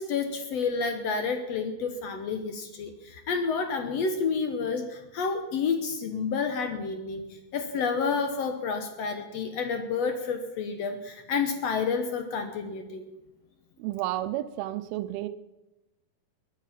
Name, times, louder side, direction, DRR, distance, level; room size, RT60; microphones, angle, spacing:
voice 1, 0.0-13.0, left 5 dB, 65° left, 6 dB, 1.6 m, -30 dB
voice 2, 13.8-15.3, right 14 dB, 90° right, 10 dB, 2.6 m, -31 dB
20.5 x 10.0 x 5.8 m, 1.0 s
omnidirectional pair, 4.3 m